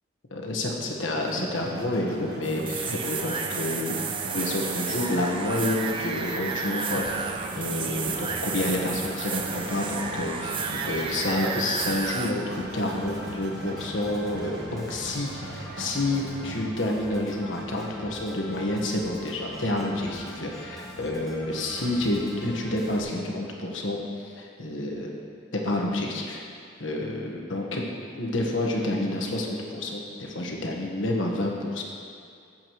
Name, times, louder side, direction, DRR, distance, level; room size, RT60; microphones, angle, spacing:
voice 1, 0.3-3.9 4.3-7.2 7.6-25.1 25.5-26.4 26.8-27.8 28.1-31.8, left 1 dB, 90° left, 0 dB, 1.4 m, -29 dB
sound 1, 1.1-16.7, right 1 dB, 55° right, 0.9 m, -39 dB
sound 2, 2.4-12.3, right 5 dB, 25° right, 0.5 m, -32 dB
Organ, 7.0-23.0, equal, ahead, 2.1 m, -43 dB
15.5 x 7.6 x 3.1 m, 2.3 s
head